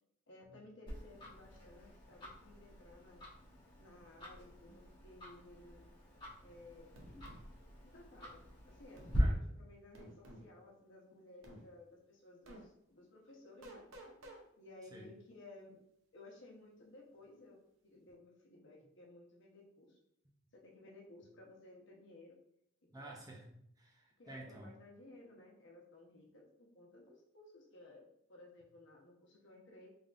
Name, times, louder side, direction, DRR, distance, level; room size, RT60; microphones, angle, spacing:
voice 1, 0.3-3.2 3.8-5.9 6.4-6.9 7.8-15.8 16.1-20.0 20.5-22.4 22.9-23.1 24.2-29.9, left 2 dB, 65° left, -2 dB, 1.0 m, -58 dB
Tick-tock, 0.9-9.2, equal, 25° left, 1.4 m, -52 dB
sound 1, 7.0-7.4 9.0-9.2 9.9-10.5 11.4-11.6 12.5-12.6 13.6-14.4, right 1 dB, 85° right, 0.8 m, -53 dB
voice 2, 9.1-9.5 14.9-15.1 22.9-24.7, right 1 dB, 20° right, -1 dB, 0.6 m, -51 dB
3.8 x 3.5 x 2.5 m, 0.73 s
head